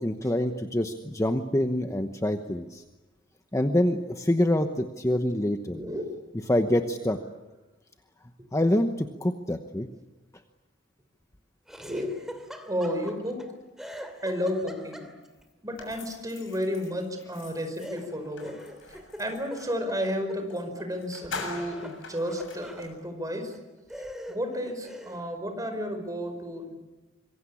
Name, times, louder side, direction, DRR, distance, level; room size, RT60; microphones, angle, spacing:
voice 1, 0.0-2.8 3.5-5.8 6.5-7.2 8.5-9.9, left 1 dB, 15° left, 6 dB, 1.0 m, -26 dB
voice 2, 5.7-6.1 11.8-12.1 12.7-13.5 14.2-15.1 15.6-18.6 18.9-23.5 24.3-26.7, equal, 20° right, 6 dB, 5.1 m, -32 dB
Laughter, 11.7-13.5 13.8-15.4 17.8-20.9 21.2-22.9 23.5-23.6 23.9-25.3, equal, ahead, 2.7 m, -43 dB
sound 1, 15.8-19.8 20.5-20.6 20.9-22.9, left 4 dB, 75° left, 7.2 m, -42 dB
26.0 x 23.5 x 8.6 m, 1.1 s
head